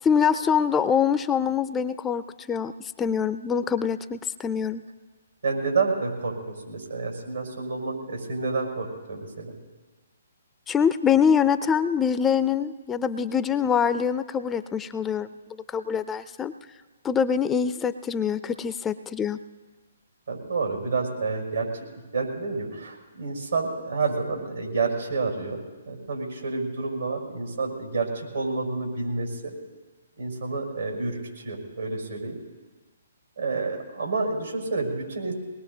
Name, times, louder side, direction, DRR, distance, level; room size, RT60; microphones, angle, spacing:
voice 1, 0.0-4.8 10.7-16.5 17.0-19.4, left 7 dB, 15° left, 12 dB, 0.4 m, -24 dB
voice 2, 5.4-9.6 20.3-21.7 22.1-25.6 25.9-29.5 30.2-32.4 33.4-35.3, right 4 dB, 85° right, -1 dB, 5.5 m, -29 dB
22.5 x 20.0 x 2.7 m, 1.3 s
hypercardioid pair, 135°, 0 cm